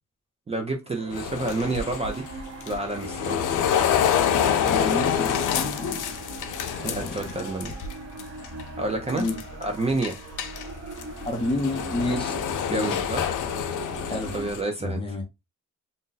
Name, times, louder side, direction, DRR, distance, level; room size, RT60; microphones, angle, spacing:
voice 1, 0.5-3.5 6.8-7.7 8.8-9.3 9.6-10.1 12.7-13.3 14.3-15.2, right 2 dB, 20° right, 0.5 m, -29 dB
sound 1, 0.8-14.5, right 2 dB, 55° right, 1.1 m, -41 dB
sound 2, 1.1-7.9 8.2-8.6 9.1-9.6 10.0-14.6, left 8 dB, 80° left, 0.5 m, -27 dB
voice 2, 4.6-6.2 6.8-7.3 9.2-9.3 11.2-12.4 12.7-13.0 14.1-14.3 14.8-15.2, left 2 dB, 20° left, 0.7 m, -30 dB
2.6 x 2.2 x 3.8 m
wide cardioid pair, 170°, 30 cm